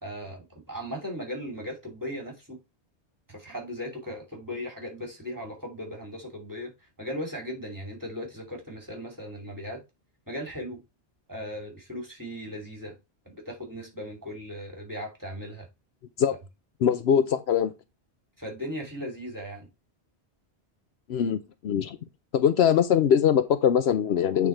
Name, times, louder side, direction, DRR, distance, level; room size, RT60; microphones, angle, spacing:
voice 1, 0.0-2.6 3.3-6.7 7.0-9.8 10.3-10.8 11.3-12.9 13.3-15.7 16.3-16.4 18.4-19.7, equal, 15° right, 2.7 m, -37 dB
voice 2, 16.8-17.7 21.1-22.0 22.3-24.5, left 8 dB, 70° left, 0.8 m, -22 dB
8.7 x 3.6 x 4.5 m
omnidirectional pair, 1.1 m